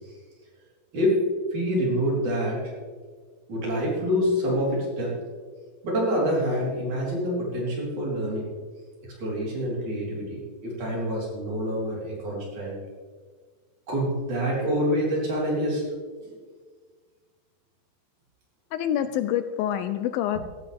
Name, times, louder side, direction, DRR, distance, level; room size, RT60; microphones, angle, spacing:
voice 1, 0.9-2.7 3.5-5.2 5.8-8.5 9.0-12.8 13.9-15.9, equal, 55° right, -4 dB, 5.2 m, -26 dB
voice 2, 18.7-20.4, left 10 dB, 80° left, 11 dB, 2.2 m, -26 dB
15.0 x 14.5 x 3.5 m, 1.5 s
omnidirectional pair, 4.4 m